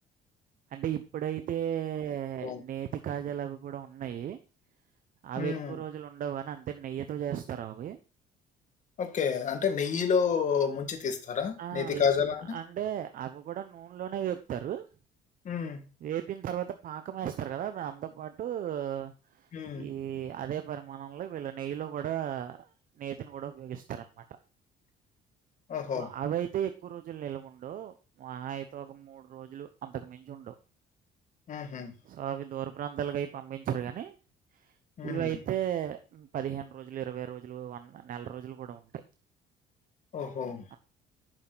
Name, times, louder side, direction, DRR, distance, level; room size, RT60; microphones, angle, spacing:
voice 1, 0.7-4.4 5.2-8.0 11.6-12.0 12.5-14.9 16.0-19.5 19.7-22.7 23.0-24.2 25.9-30.5 32.0-34.1 35.0-39.0 40.7-40.8, right 10 dB, 55° right, 9 dB, 0.8 m, -35 dB
voice 2, 5.4-5.8 9.0-12.6 15.5-15.9 19.5-19.9 25.7-26.1 31.5-31.9 35.0-35.3 40.1-40.7, left 6 dB, 45° left, 6 dB, 1.8 m, -30 dB
8.9 x 6.5 x 3.9 m, 0.36 s
cardioid pair, 110°, 17 cm